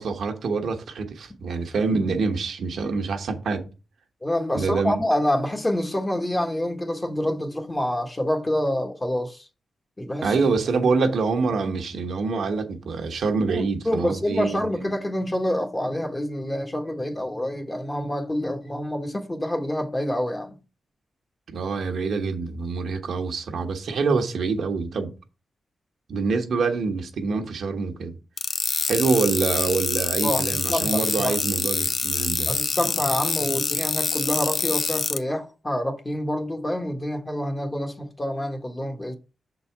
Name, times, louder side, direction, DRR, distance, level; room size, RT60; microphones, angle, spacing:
voice 1, 0.0-3.7 4.5-5.0 10.2-14.7 21.5-25.1 26.1-28.2 28.9-32.5, right 4 dB, 75° right, 1.1 m, -25 dB
voice 2, 4.2-9.5 10.0-10.3 13.5-20.6 30.2-30.4 30.7-31.4 32.5-39.1, left 1 dB, 20° left, 1.4 m, -27 dB
sound 1, 28.4-35.2, left 4 dB, 50° left, 0.6 m, -26 dB
6.2 x 4.1 x 4.6 m
cardioid pair, 60°, 0 cm